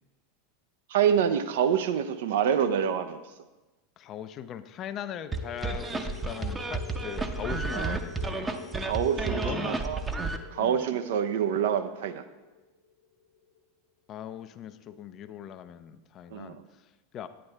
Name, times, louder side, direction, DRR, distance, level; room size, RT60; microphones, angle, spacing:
voice 1, 0.9-3.2 7.7-7.9 8.4-10.0 10.5-12.2 16.3-16.6, right 8 dB, 60° right, 9 dB, 0.6 m, -27 dB
voice 2, 4.0-8.5 9.4-9.9 10.6-10.8 14.1-17.3, left 9 dB, 35° left, 12 dB, 0.5 m, -40 dB
sound 1, 5.3-13.6, left 5 dB, 60° left, 0.9 m, -47 dB
sound 2, 5.3-10.4, right 3 dB, 15° right, 0.7 m, -31 dB
9.5 x 8.7 x 3.4 m, 1.1 s
figure-of-eight pair, 85°, 0 cm